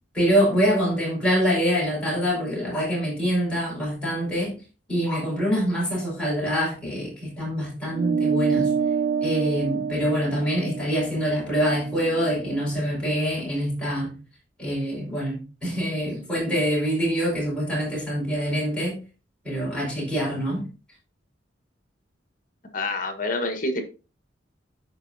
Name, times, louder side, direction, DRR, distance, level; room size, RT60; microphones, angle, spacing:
voice 1, 0.1-4.5 4.9-8.7 9.2-14.1 14.6-19.0 19.4-20.7, equal, 5° left, 5.3 m, -25 dB
sound 1, 7.9-12.7, right 6 dB, 65° right, 0.4 m, -27 dB
voice 2, 22.7-23.8, left 2 dB, 45° left, 1.4 m, -27 dB
13.5 x 5.1 x 2.7 m
head